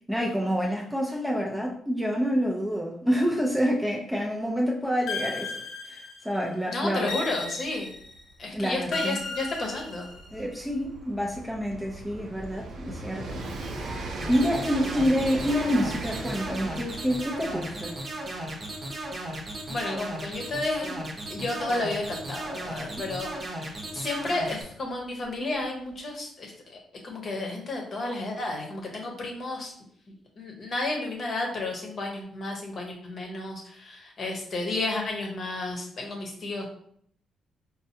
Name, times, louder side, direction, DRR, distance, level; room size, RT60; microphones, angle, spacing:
voice 1, 0.1-5.6 5.9-7.2 8.5-9.2 10.3-13.4 13.7-13.9 14.3-18.0, equal, ahead, -2 dB, 0.5 m, -27 dB
sound 1, 5.1-6.4 7.1-8.2 8.9-10.4, left 3 dB, 75° left, 0.6 m, -35 dB
voice 2, 6.7-7.9 8.4-10.1 19.1-19.2 19.7-20.9 21.3-26.8 27.0-29.7 30.4-36.7, left 2 dB, 45° left, 1 dB, 0.9 m, -32 dB
Train, 7.1-7.2 7.4-24.0 25.0-25.1, right 2 dB, 65° right, 0.6 m, -40 dB
sound 2, 14.2-24.6, right 1 dB, 35° right, 0.8 m, -36 dB
4.3 x 2.2 x 2.8 m, 0.64 s
cardioid pair, 120°, 0 cm